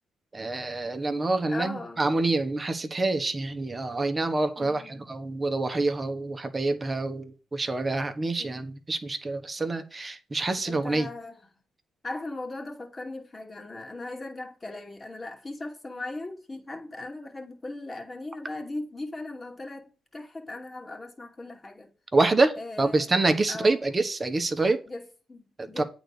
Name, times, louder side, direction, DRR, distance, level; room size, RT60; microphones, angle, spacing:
voice 1, 0.3-11.1 22.1-24.8 25.6-25.8, right 2 dB, 25° right, 1.3 m, -26 dB
voice 2, 1.5-2.0 4.6-4.9 8.4-8.6 10.6-11.4 12.0-21.9 22.6-23.1 23.5-23.8 24.9-25.8, left 2 dB, 25° left, 2.4 m, -38 dB
8.8 x 4.1 x 6.6 m
cardioid pair, 90°, 0 cm